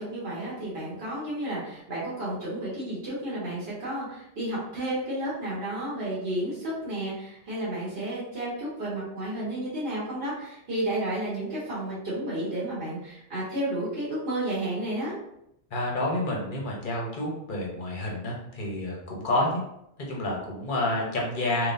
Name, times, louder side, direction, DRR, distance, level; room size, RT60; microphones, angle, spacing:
voice 1, 0.0-15.1, right 1 dB, 55° right, -8 dB, 1.4 m, -32 dB
voice 2, 15.7-19.6 20.1-21.7, left 1 dB, 45° left, -2 dB, 1.0 m, -29 dB
3.8 x 3.2 x 2.6 m, 0.79 s
omnidirectional pair, 1.2 m